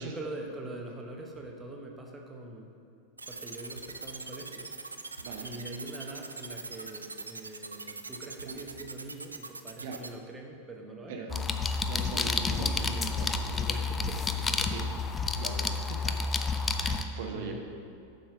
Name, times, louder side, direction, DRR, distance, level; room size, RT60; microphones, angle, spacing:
voice 1, 0.0-2.7 3.3-4.7 5.4-11.2 11.6-11.9 12.1-14.9 15.8-15.9 16.4-16.6 17.3-17.6, right 2 dB, 15° right, 1 dB, 1.1 m, -43 dB
sound 1, 3.2-10.1, right 3 dB, 80° right, 0.4 m, -41 dB
voice 2, 11.1-11.4 11.9-12.7 12.9-13.6 14.7-14.9 15.3-16.3 16.8-17.6, right 5 dB, 50° right, 2 dB, 0.9 m, -41 dB
sound 2, 11.3-17.0, left 4 dB, 15° left, 0.5 m, -30 dB
7.3 x 5.5 x 5.8 m, 2.6 s
figure-of-eight pair, 90°, 0 cm